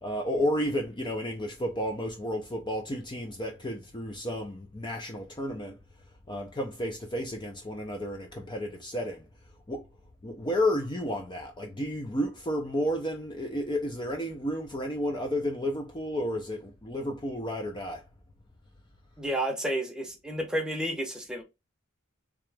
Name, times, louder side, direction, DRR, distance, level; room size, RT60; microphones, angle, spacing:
voice 1, 0.0-5.8 6.3-9.3 9.7-9.9 10.2-18.1, equal, 20° left, 0.5 m, -32 dB
voice 2, 19.2-21.4, right 1 dB, 5° right, 0.8 m, -31 dB
3.6 x 2.9 x 3.3 m
head